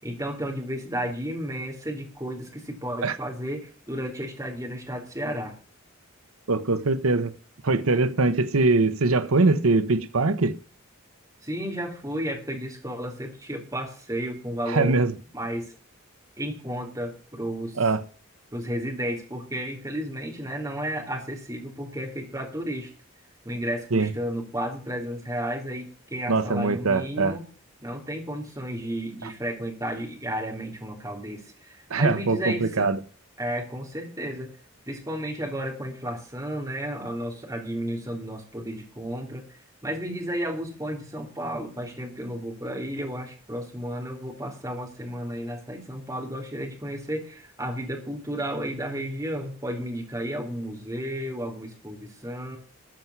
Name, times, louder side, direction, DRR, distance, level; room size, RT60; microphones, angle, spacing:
voice 1, 0.0-5.6 11.4-15.0 15.3-15.7 16.4-17.8 18.5-22.9 23.5-27.5 27.8-32.9 33.4-34.5 34.9-52.6, equal, 15° right, 3.4 m, -33 dB
voice 2, 6.5-7.3 7.6-10.5 14.7-15.1 17.8-18.0 23.9-24.1 26.3-27.4 31.9-33.0, right 3 dB, 90° right, 0.9 m, -22 dB
14.0 x 5.9 x 9.5 m
head